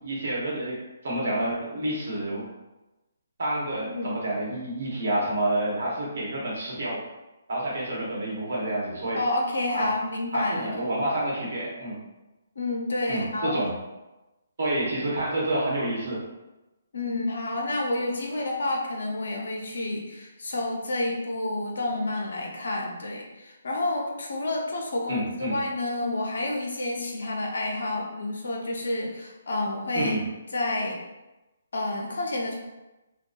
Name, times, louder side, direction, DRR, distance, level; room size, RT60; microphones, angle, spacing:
voice 1, 0.0-2.5 3.4-7.0 7.5-9.2 9.7-9.9 10.3-12.0 13.1-13.7 14.6-16.2 25.1-25.6 29.9-30.2, right 1 dB, 60° right, -5 dB, 1.0 m, -28 dB
voice 2, 3.8-4.1 9.1-10.9 12.6-13.6 16.9-30.2 30.5-31.0 31.7-32.5, left 2 dB, 70° left, 0 dB, 0.6 m, -29 dB
2.5 x 2.2 x 2.3 m, 1.0 s
hypercardioid pair, 145°, 0 cm